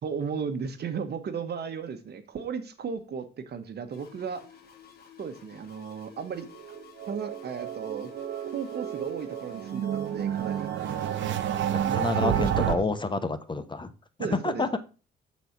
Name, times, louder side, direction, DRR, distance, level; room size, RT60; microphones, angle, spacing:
voice 1, 0.0-4.5 5.2-6.5 7.1-8.1 8.4-10.7 11.8-12.8 14.2-14.7, right 6 dB, 55° right, 9 dB, 1.3 m, -35 dB
sound 1, 3.9-11.5, left 9 dB, 50° left, 2.1 m, -52 dB
sound 2, 6.6-12.8, right 10 dB, 70° right, 0.9 m, -30 dB
voice 2, 11.7-13.9 14.4-14.8, left 3 dB, 25° left, 10 dB, 0.9 m, -29 dB
8.0 x 4.2 x 5.9 m, 0.34 s
cardioid pair, 90°, 20 cm